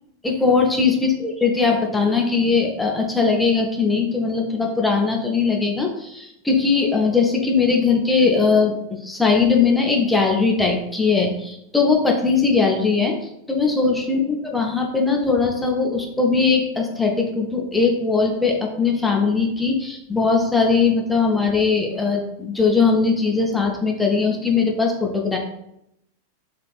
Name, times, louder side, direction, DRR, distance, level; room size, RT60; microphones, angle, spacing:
voice 1, 0.2-13.1 13.5-25.4, left 4 dB, 5° left, 0 dB, 0.4 m, -20 dB
3.1 x 2.4 x 2.3 m, 0.80 s
figure-of-eight pair, 90°, 0 cm